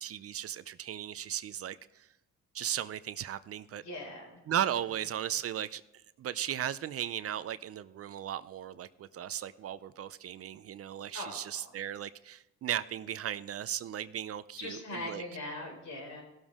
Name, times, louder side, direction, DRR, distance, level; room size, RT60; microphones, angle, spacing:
voice 1, 0.0-2.1 2.5-3.8 4.5-5.8 6.2-15.2, right 10 dB, 50° right, 15 dB, 0.5 m, -36 dB
voice 2, 3.8-4.4 11.1-11.7 14.6-16.2, left 2 dB, 65° left, 1 dB, 4.5 m, -41 dB
17.0 x 7.3 x 3.6 m, 0.97 s
cardioid pair, 90°, 30 cm